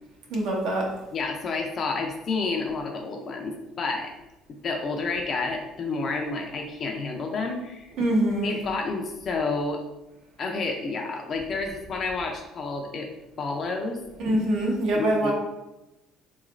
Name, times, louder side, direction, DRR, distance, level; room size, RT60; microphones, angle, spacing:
voice 1, 0.3-0.9 8.0-8.5 14.2-15.3, right 1 dB, 65° right, -1 dB, 0.9 m, -24 dB
voice 2, 1.1-4.1 4.6-7.9 8.4-9.8 10.4-13.1 13.4-14.0 15.0-15.3, left 3 dB, 35° left, 1 dB, 0.4 m, -30 dB
3.7 x 3.1 x 2.4 m, 0.99 s
cardioid pair, 150°, 0 cm